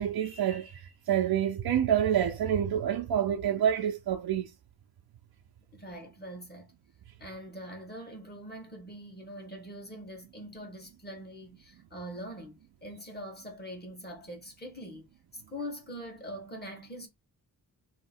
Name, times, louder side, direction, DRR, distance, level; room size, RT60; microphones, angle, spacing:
voice 1, 0.0-4.5, right 9 dB, 85° right, 0.7 m, -27 dB
voice 2, 5.7-6.8 7.2-17.1, equal, 25° left, 1.3 m, -43 dB
3.2 x 2.9 x 4.3 m
wide cardioid pair, 140°, 37 cm